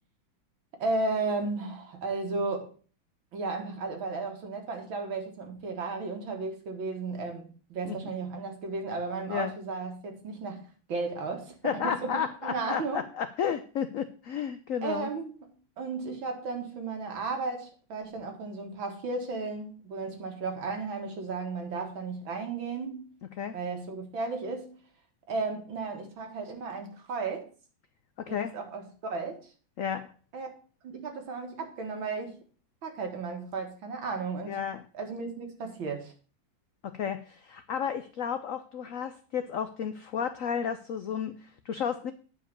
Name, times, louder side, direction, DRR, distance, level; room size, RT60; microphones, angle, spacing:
voice 1, 0.7-2.7 3.3-13.0 14.8-15.3 15.8-23.1 23.5-24.8 25.3-27.5 28.5-29.4 30.3-30.5 30.8-32.4 32.8-34.6 34.9-36.1, right 3 dB, 75° right, 2.5 m, -34 dB
voice 2, 11.6-15.1 23.3-23.6 28.2-28.5 29.8-30.1 34.5-34.9 36.8-42.1, left 8 dB, 85° left, 0.7 m, -32 dB
9.5 x 5.0 x 6.7 m
omnidirectional pair, 2.2 m